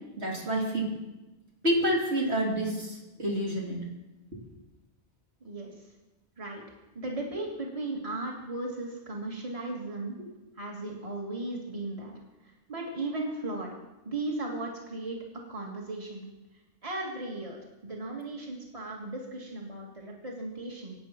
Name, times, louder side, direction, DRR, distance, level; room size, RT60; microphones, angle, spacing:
voice 1, 0.2-0.9 1.6-3.8 10.2-10.3, equal, 70° right, -2 dB, 3.8 m, -28 dB
voice 2, 5.4-5.7 6.4-6.6 6.9-10.1 10.6-12.2 12.7-13.7 14.0-15.2 15.5-16.3 16.8-20.9, right 2 dB, 30° right, -1 dB, 2.3 m, -36 dB
24.5 x 8.9 x 6.0 m, 1.1 s
omnidirectional pair, 1.1 m